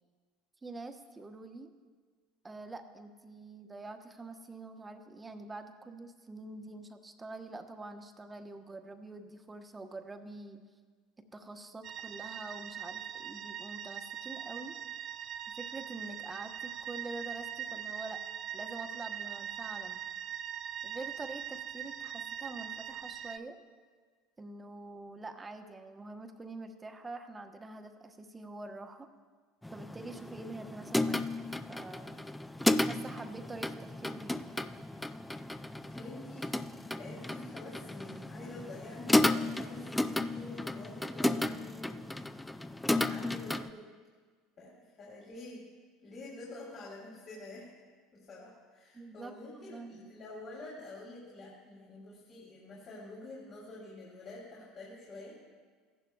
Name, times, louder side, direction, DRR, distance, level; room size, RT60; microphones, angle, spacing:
voice 1, 0.6-1.7 2.4-10.6 11.3-14.8 15.5-18.2 18.5-20.0 20.8-23.6 24.4-29.1 29.7-31.3 31.7-32.2 32.9-34.6 48.9-49.3 49.6-50.1, right 2 dB, 20° right, 6 dB, 1.0 m, -45 dB
sound 1, 11.8-23.4, right 9 dB, 50° right, 0.4 m, -41 dB
sound 2, 29.6-43.7, left 2 dB, 10° left, 0.4 m, -33 dB
voice 2, 35.8-36.6 36.9-42.0 42.8-43.9 44.6-45.6 46.0-47.7 48.1-55.4, left 2 dB, 45° left, -5 dB, 3.2 m, -47 dB
16.0 x 11.0 x 2.3 m, 1.5 s
hypercardioid pair, 80°, 0 cm